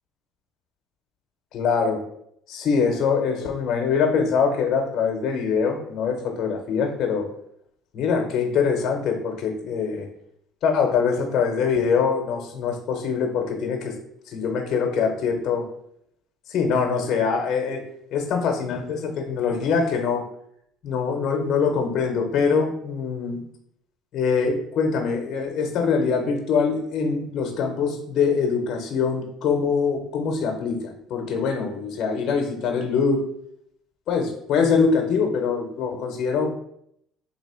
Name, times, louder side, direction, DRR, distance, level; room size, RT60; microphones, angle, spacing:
voice 1, 1.5-2.0 2.5-7.3 7.9-10.1 10.6-14.0 14.3-15.7 16.5-17.8 18.1-20.3 20.8-23.4 24.1-33.2 34.1-36.5, left 5 dB, 55° left, 3 dB, 0.8 m, -23 dB
3.4 x 2.9 x 4.3 m, 0.72 s
cardioid pair, 115°, 0 cm